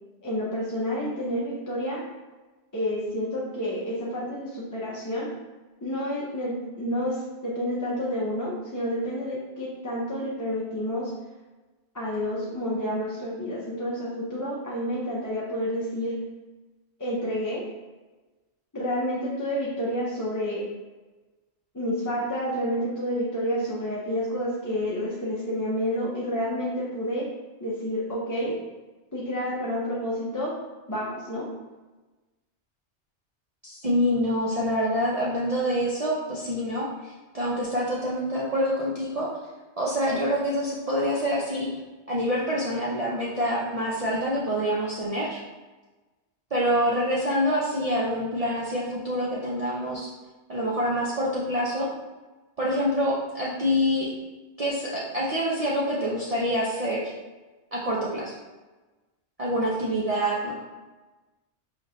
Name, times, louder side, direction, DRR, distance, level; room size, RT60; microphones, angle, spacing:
voice 1, 0.2-2.0 2.7-5.3 5.8-11.1 11.9-16.2 17.0-17.7 18.7-20.7 21.7-27.3 27.6-28.6 29.1-30.6 30.9-31.5, equal, 20° left, -6 dB, 0.6 m, -29 dB
voice 2, 33.6-39.3 39.8-41.7 42.1-45.4 46.5-50.1 50.5-51.9 52.6-54.1 54.6-57.1 57.7-58.3 59.4-60.5, equal, 40° right, -6 dB, 0.6 m, -26 dB
5.0 x 3.0 x 2.6 m, 1.2 s
omnidirectional pair, 1.2 m